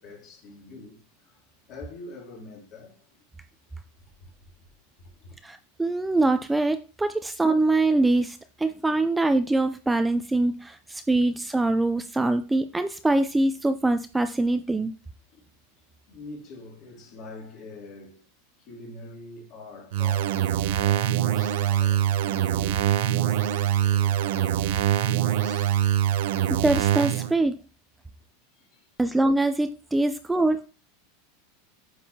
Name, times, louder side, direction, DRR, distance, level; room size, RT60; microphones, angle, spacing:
voice 1, 0.0-1.4 1.7-3.2 4.2-4.3 5.0-5.4 11.1-11.2 15.3-15.5 16.1-18.2 18.6-25.8 28.5-28.8, left 3 dB, 45° left, 2.9 m, -45 dB
voice 2, 5.4-14.9 26.5-27.6 29.0-30.6, right 2 dB, 10° right, 0.4 m, -24 dB
sound 1, 19.9-27.3, right 11 dB, 70° right, 0.6 m, -24 dB
8.3 x 5.4 x 2.8 m
supercardioid pair, 130°, 0 cm